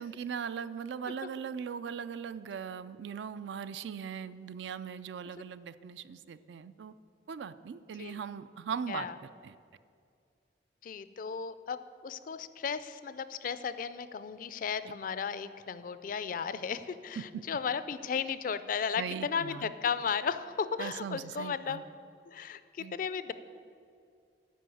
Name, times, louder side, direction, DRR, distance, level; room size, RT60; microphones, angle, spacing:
voice 1, 0.0-6.9 7.3-9.1 9.4-9.6 17.2-17.4 19.0-19.7 20.8-21.8 22.8-23.0, right 7 dB, 80° right, 14 dB, 0.4 m, -39 dB
voice 2, 10.8-21.8 22.3-23.3, left 6 dB, 50° left, 14 dB, 0.4 m, -35 dB
9.3 x 5.5 x 7.6 m, 2.4 s
head